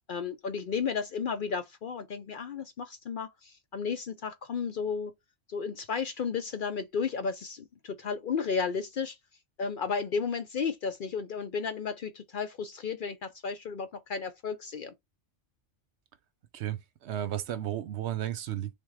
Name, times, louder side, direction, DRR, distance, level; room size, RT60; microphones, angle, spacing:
voice 1, 0.1-5.1 5.5-9.2 9.6-14.9, left 5 dB, 60° left, 0.6 m, -33 dB
voice 2, 16.5-18.7, right 11 dB, 70° right, 0.8 m, -33 dB
3.6 x 3.4 x 3.1 m
omnidirectional pair, 1.3 m